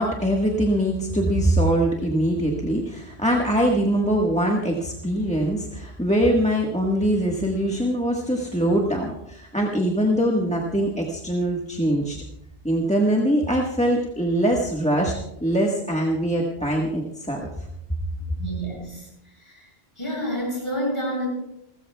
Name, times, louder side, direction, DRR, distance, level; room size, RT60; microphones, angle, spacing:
voice 1, 0.0-12.2 12.6-15.1 15.4-17.5, right 1 dB, 5° left, -1 dB, 1.4 m, -22 dB
voice 2, 18.4-19.1 19.4-19.7 20.0-21.3, equal, 25° left, -4 dB, 7.7 m, -29 dB
29.0 x 13.5 x 2.3 m, 0.82 s
omnidirectional pair, 1.1 m